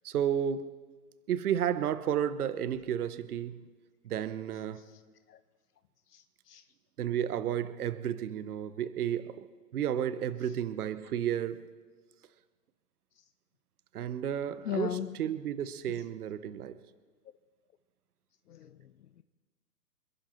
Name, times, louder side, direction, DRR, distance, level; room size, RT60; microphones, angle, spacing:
voice 1, 0.0-0.7 1.3-3.6 4.0-4.8 7.0-9.5 9.7-11.7 13.9-16.8, right 9 dB, 65° right, 14 dB, 1.0 m, -32 dB
voice 2, 6.1-6.6 14.6-15.2 15.9-16.0 18.5-18.8, left 11 dB, 70° left, 11 dB, 0.8 m, -37 dB
27.0 x 11.5 x 4.4 m, 1.4 s
hypercardioid pair, 145°, 49 cm